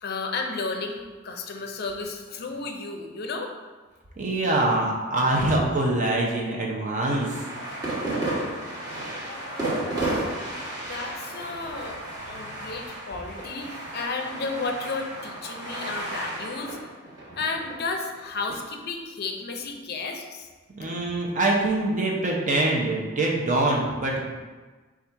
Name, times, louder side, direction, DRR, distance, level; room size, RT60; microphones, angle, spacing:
voice 1, 0.0-3.6 9.1-10.3 10.9-16.8 17.4-20.5 20.8-20.9, left 3 dB, 50° left, 4 dB, 0.5 m, -33 dB
voice 2, 4.2-7.3 20.7-24.3, right 2 dB, 40° right, -2 dB, 0.6 m, -24 dB
sound 1, 7.1-18.6, right 1 dB, 20° right, 1.1 m, -33 dB
4.1 x 2.4 x 4.5 m, 1.3 s
head